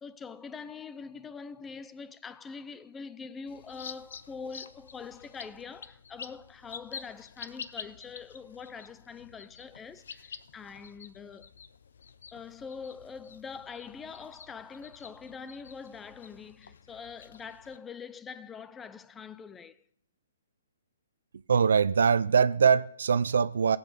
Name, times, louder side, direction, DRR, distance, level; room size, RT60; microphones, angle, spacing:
voice 1, 0.0-11.5 12.3-19.8, left 5 dB, 10° left, 0.6 m, -44 dB
sound 1, 3.5-17.8, left 6 dB, 70° left, 0.9 m, -48 dB
voice 2, 21.5-23.8, right 6 dB, 75° right, 0.5 m, -23 dB
16.5 x 7.9 x 6.7 m
hypercardioid pair, 145°, 0 cm